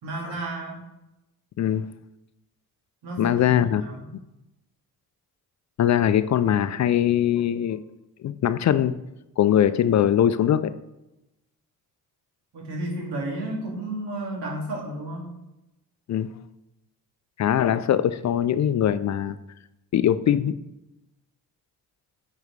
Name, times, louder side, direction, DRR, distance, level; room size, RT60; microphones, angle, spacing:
voice 1, 0.0-0.8 3.0-3.5 3.8-4.0 12.5-15.3, right 1 dB, 75° right, -2 dB, 2.3 m, -32 dB
voice 2, 3.2-3.8 5.8-7.8 8.2-9.0 9.4-10.7 16.1-16.3 17.4-19.4 19.9-20.5, left 10 dB, 45° left, 14 dB, 0.4 m, -21 dB
9.4 x 4.7 x 3.2 m, 0.94 s
supercardioid pair, 50°, 41 cm